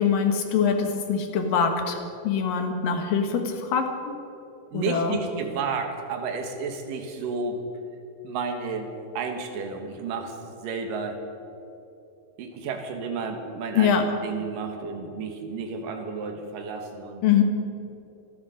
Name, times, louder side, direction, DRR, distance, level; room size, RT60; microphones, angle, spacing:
voice 1, 0.0-4.1 4.7-5.2 13.7-14.0 17.2-17.4, left 7 dB, 90° left, 5 dB, 3.2 m, -23 dB
voice 2, 4.7-7.6 8.2-11.2 12.4-17.2, right 4 dB, 80° right, 4 dB, 3.2 m, -32 dB
27.0 x 10.5 x 5.1 m, 2.8 s
omnidirectional pair, 3.8 m